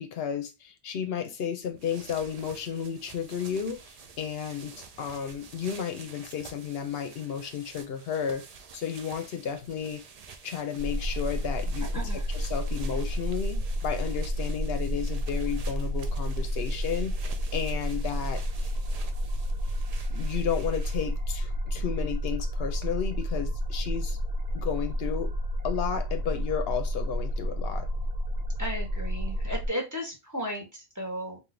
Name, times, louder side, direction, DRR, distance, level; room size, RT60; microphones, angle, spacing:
voice 1, 0.0-8.4 8.7-10.0 10.4-11.9 12.3-18.7 20.1-24.2 24.5-25.3 25.6-27.9, left 8 dB, 70° left, 0.8 m, -33 dB
sound 1, 1.6-21.2, right 5 dB, 50° right, 0.5 m, -49 dB
sound 2, 10.8-29.7, equal, 75° right, 1.1 m, -30 dB
voice 2, 11.9-12.3 28.6-31.4, equal, 15° right, 1.2 m, -35 dB
3.7 x 2.6 x 3.2 m
omnidirectional pair, 1.1 m